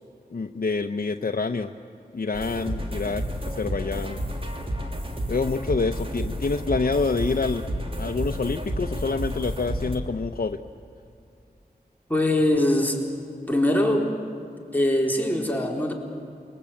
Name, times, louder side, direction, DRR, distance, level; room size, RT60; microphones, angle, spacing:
voice 1, 0.3-1.7 2.1-4.2 5.3-7.7 8.0-10.6, left 4 dB, 60° left, 4 dB, 0.8 m, -27 dB
sound 1, 2.3-10.0, equal, 35° right, 3.0 m, -31 dB
voice 2, 12.1-13.0 13.5-14.1 14.7-15.9, left 1 dB, 10° left, -1 dB, 4.1 m, -22 dB
28.5 x 22.5 x 8.6 m, 2.5 s
wide cardioid pair, 60°, 16 cm